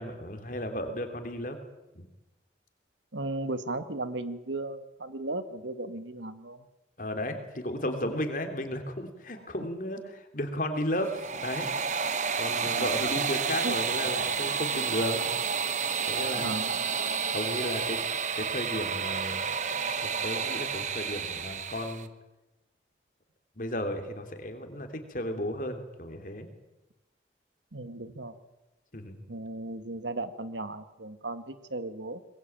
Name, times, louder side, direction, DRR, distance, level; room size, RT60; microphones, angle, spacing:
voice 1, 0.0-1.6 1.9-2.0 7.0-11.7 12.4-15.3 16.1-16.5 17.3-18.0 18.3-19.4 20.0-22.1 23.6-26.5 28.9-29.2, left 1 dB, 45° left, 6 dB, 3.3 m, -34 dB
voice 2, 3.1-6.6 12.6-13.0 13.6-13.7 16.3-16.7 27.7-28.4 29.3-32.2, right 2 dB, 90° right, 11 dB, 1.6 m, -36 dB
sound 1, 10.9-22.0, right 6 dB, 40° right, 1.2 m, -30 dB
23.0 x 21.0 x 9.0 m, 1.0 s
head